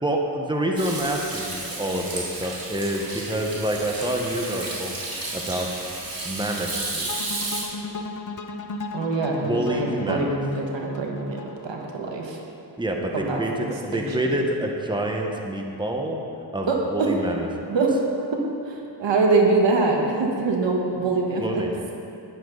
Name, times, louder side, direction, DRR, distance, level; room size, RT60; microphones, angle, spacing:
voice 1, 0.0-4.9 5.3-5.9 6.2-7.4 9.4-10.3 12.8-16.2 16.5-17.7 21.4-21.7, right 1 dB, 10° right, 1 dB, 1.4 m, -27 dB
Hands / Sink (filling or washing), 0.8-7.6, right 2 dB, 50° right, 2.9 m, -32 dB
sound 1, 7.1-12.2, left 3 dB, 40° left, 1.0 m, -35 dB
voice 2, 8.9-12.4 13.1-13.7 13.9-14.4 16.7-17.1 17.7-18.1 18.6-21.6, right 3 dB, 75° right, 0 dB, 1.6 m, -24 dB
12.0 x 10.5 x 4.1 m, 2.7 s
cardioid pair, 65°, 45 cm